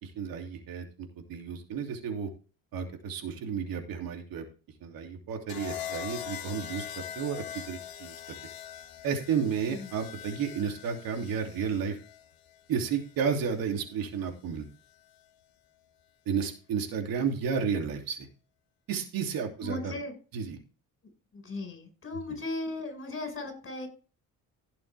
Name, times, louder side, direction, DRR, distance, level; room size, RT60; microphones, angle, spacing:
voice 1, 0.0-2.3 2.7-4.4 4.8-6.9 7.2-8.1 9.0-12.0 12.7-14.7 16.3-18.3 18.9-19.9 20.3-20.6, right 6 dB, 75° right, 3 dB, 2.9 m, -32 dB
sound 1, 5.5-13.6 14.8-15.2, left 10 dB, 85° left, 1.7 m, -43 dB
voice 2, 19.6-20.1 21.3-23.9, left 2 dB, 35° left, 6 dB, 5.3 m, -37 dB
16.5 x 6.8 x 3.4 m, 0.36 s
cardioid pair, 115°, 35 cm